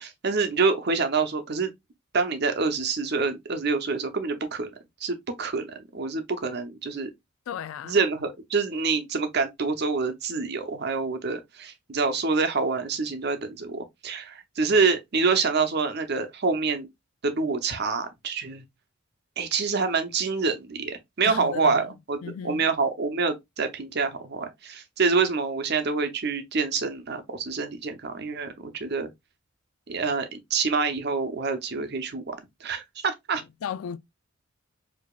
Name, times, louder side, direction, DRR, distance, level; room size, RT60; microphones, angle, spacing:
voice 1, 0.0-1.7 2.1-4.7 5.0-7.1 7.8-16.9 17.2-18.6 19.4-29.1 29.9-33.4, right 4 dB, 55° right, 0.7 m, -26 dB
voice 2, 7.5-8.0 21.3-21.9 22.2-22.7 33.6-34.0, left 8 dB, 85° left, 0.3 m, -35 dB
4.7 x 2.8 x 2.3 m
head